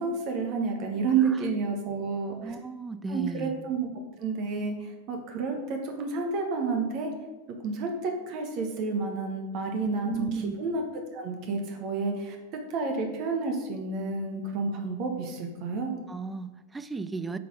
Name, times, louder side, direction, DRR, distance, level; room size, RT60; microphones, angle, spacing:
voice 1, 0.0-2.5 3.1-3.9 4.2-7.1 7.6-12.4 12.7-16.0, right 4 dB, 40° right, 3 dB, 1.1 m, -30 dB
voice 2, 2.3-3.5 10.0-10.6 16.1-17.4, right 4 dB, 10° right, 12 dB, 0.4 m, -35 dB
8.3 x 4.2 x 4.9 m, 1.2 s
figure-of-eight pair, 90°, 0 cm